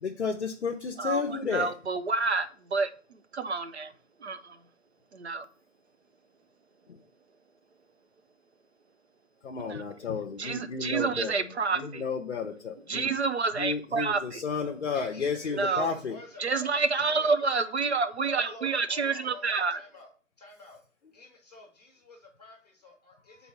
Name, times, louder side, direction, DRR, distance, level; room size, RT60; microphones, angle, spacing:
voice 1, 0.0-1.7 6.9-7.0 9.4-11.5 11.7-13.1 13.6-16.2, left 5 dB, 55° left, 3 dB, 0.7 m, -32 dB
voice 2, 1.5-2.9 3.3-3.9 4.2-4.6 5.1-5.4 9.6-9.8 10.4-12.0 12.9-14.4 15.5-15.9 16.4-19.8, right 4 dB, 55° right, 10 dB, 0.6 m, -28 dB
voice 3, 14.9-17.3 18.2-20.1 20.4-20.8 21.1-23.5, left 3 dB, 30° left, 1 dB, 1.1 m, -48 dB
4.6 x 4.0 x 5.7 m, 0.41 s
hypercardioid pair, 170°, 39 cm